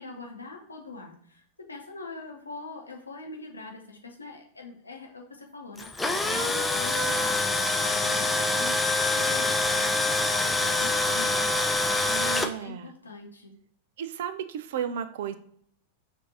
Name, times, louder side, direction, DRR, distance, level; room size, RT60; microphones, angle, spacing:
voice 1, 0.0-8.8 9.1-11.6 11.9-12.3 12.6-13.5, left 3 dB, 80° left, 1 dB, 0.9 m, -43 dB
Tools, 5.8-12.5, left 2 dB, 10° left, 0.4 m, -25 dB
voice 2, 12.0-12.9 14.0-15.4, right 8 dB, 55° right, 12 dB, 0.4 m, -34 dB
6.2 x 2.6 x 2.8 m, 0.64 s
figure-of-eight pair, 90°, 0 cm